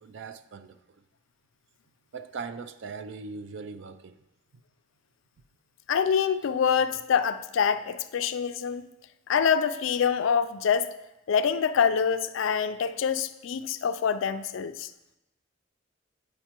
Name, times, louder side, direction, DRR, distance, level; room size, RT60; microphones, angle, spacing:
voice 1, 0.0-1.0 2.1-4.2, right 4 dB, 65° right, 0.4 m, -40 dB
voice 2, 5.9-8.8 9.3-10.9 11.3-14.9, left 7 dB, 70° left, 0.4 m, -25 dB
9.0 x 5.2 x 2.9 m
head